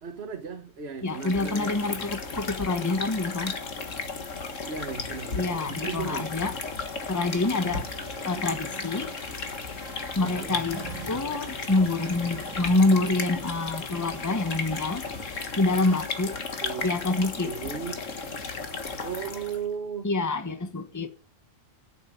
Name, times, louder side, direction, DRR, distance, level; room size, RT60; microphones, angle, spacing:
voice 1, 0.0-2.2 4.7-6.3 10.2-10.6 16.6-16.9 17.4-18.0 19.0-20.1, right 6 dB, 50° right, 1.6 m, -36 dB
sound 1, 1.0-19.7, left 4 dB, 65° left, 2.1 m, -35 dB
voice 2, 1.0-3.6 5.4-6.5 7.1-7.9 8.2-9.2 10.2-15.1 15.6-16.4 16.8-17.5 20.0-21.1, left 2 dB, 15° left, 1.1 m, -26 dB
sound 2, 7.1-13.2 13.5-16.8, right 6 dB, 80° right, 1.9 m, -47 dB
11.5 x 8.7 x 8.8 m
omnidirectional pair, 1.4 m